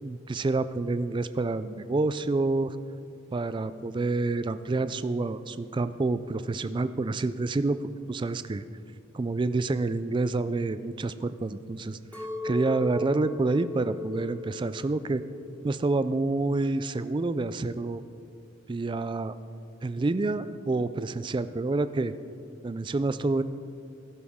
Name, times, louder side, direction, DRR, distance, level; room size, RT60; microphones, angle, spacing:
voice 1, 0.0-2.8 3.3-7.8 8.1-8.6 9.1-15.2 15.6-18.0 18.7-19.3 19.8-22.1 22.6-23.4, right 3 dB, 25° right, 13 dB, 0.3 m, -28 dB
Chink clink, 12.1-16.4 16.9-17.4, left 1 dB, 5° left, 1.5 m, -38 dB
17.0 x 11.0 x 3.6 m, 2.5 s
head